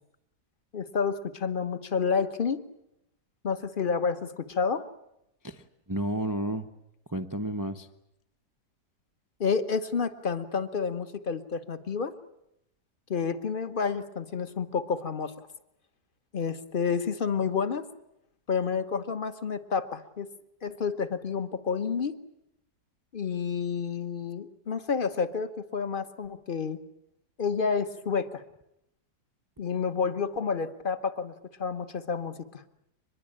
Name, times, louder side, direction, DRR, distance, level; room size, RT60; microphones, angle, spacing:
voice 1, 0.7-2.6 3.4-4.9 9.4-12.1 13.1-15.5 16.3-17.9 18.5-20.3 20.6-22.2 23.1-26.8 27.4-28.4 29.6-32.7, left 5 dB, 35° left, 11 dB, 1.2 m, -30 dB
voice 2, 5.4-6.7 7.1-7.9, right 1 dB, 20° right, 8 dB, 0.6 m, -32 dB
24.0 x 21.5 x 8.8 m, 0.84 s
omnidirectional pair, 1.8 m